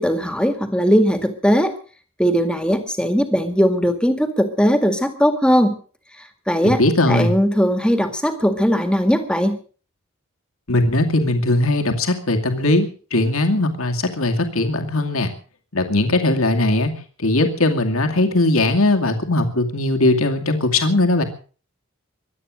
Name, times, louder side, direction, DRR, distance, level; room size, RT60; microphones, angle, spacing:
voice 1, 0.0-1.7 2.2-5.8 6.5-6.8 7.1-9.6, equal, 5° left, 8 dB, 2.0 m, -18 dB
voice 2, 6.8-7.3 10.7-15.3 15.7-16.9 17.2-21.2, left 2 dB, 75° left, 4 dB, 2.5 m, -19 dB
23.5 x 9.2 x 6.3 m, 0.41 s
head